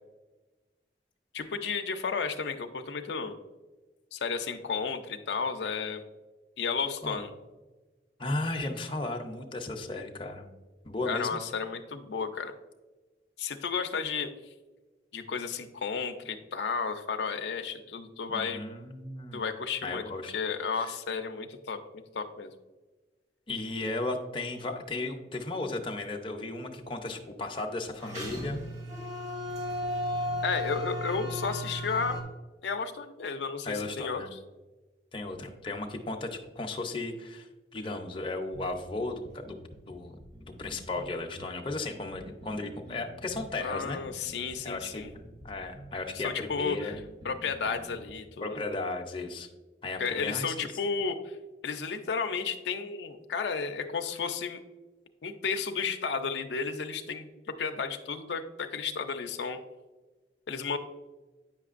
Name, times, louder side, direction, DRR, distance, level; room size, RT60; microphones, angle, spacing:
voice 1, 1.3-3.3 4.1-6.0 6.6-7.3 11.1-12.5 13.4-14.3 15.1-18.6 19.3-22.5 30.4-32.2 32.6-34.4 43.6-45.1 46.1-47.0 47.2-48.6 50.0-51.4 51.6-54.6 55.2-57.3 57.6-59.6 60.5-60.8, left 5 dB, 75° left, 6 dB, 0.5 m, -33 dB
voice 2, 8.2-10.5 10.8-11.4 18.3-19.5 19.8-20.4 20.8-20.9 23.5-28.6 33.6-34.3 35.1-39.6 39.9-44.0 44.6-45.1 45.4-46.9 48.4-49.5 49.8-50.7, left 2 dB, 30° left, 2 dB, 0.6 m, -35 dB
sound 1, 28.0-32.2, left 1 dB, 40° right, 1.2 m, -34 dB
sound 2, 38.5-48.1, equal, 20° right, 0.5 m, -49 dB
8.5 x 5.9 x 2.4 m, 1.2 s
head